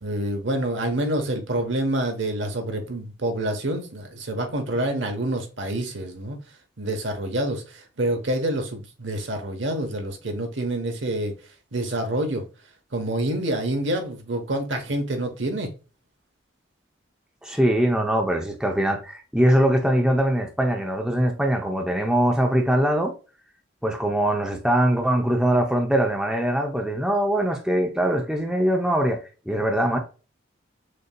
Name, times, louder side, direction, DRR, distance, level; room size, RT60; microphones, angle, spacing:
voice 1, 0.0-6.4 6.8-11.3 11.7-12.4 12.9-15.7, right 1 dB, 65° right, 1.0 m, -27 dB
voice 2, 17.4-23.1 23.8-29.2 29.5-30.0, right 1 dB, 5° right, 0.6 m, -22 dB
6.4 x 2.7 x 2.2 m
head